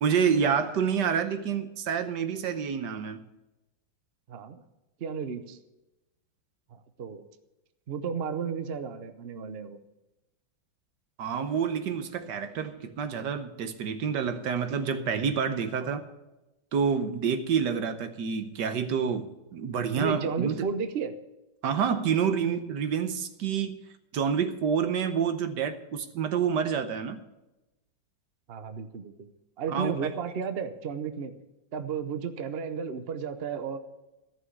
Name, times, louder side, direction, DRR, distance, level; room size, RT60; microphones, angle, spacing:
voice 1, 0.0-3.2 11.2-16.0 16.7-20.6 21.6-23.8 24.1-27.2 29.7-29.9, right 7 dB, 65° right, 9 dB, 1.5 m, -28 dB
voice 2, 4.3-4.6 5.0-5.6 6.7-7.2 7.9-9.8 15.8-16.0 20.0-21.1 28.5-29.3 29.6-31.3 31.7-33.8, right 6 dB, 50° right, 10 dB, 0.7 m, -33 dB
14.0 x 6.2 x 9.6 m, 0.99 s
omnidirectional pair, 2.1 m